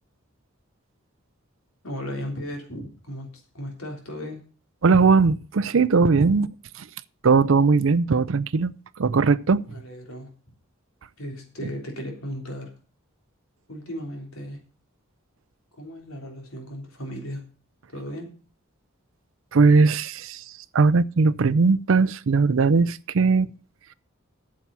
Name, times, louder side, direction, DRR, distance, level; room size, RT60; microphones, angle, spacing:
voice 1, 1.8-4.4 9.7-10.3 11.2-12.7 13.7-14.6 15.8-17.4 17.9-18.3, equal, 85° left, 3.5 m, -36 dB
voice 2, 4.8-6.9 7.2-8.7 9.0-9.6 19.5-20.4 20.7-23.5, right 4 dB, 65° right, 0.5 m, -19 dB
9.0 x 7.4 x 6.8 m
head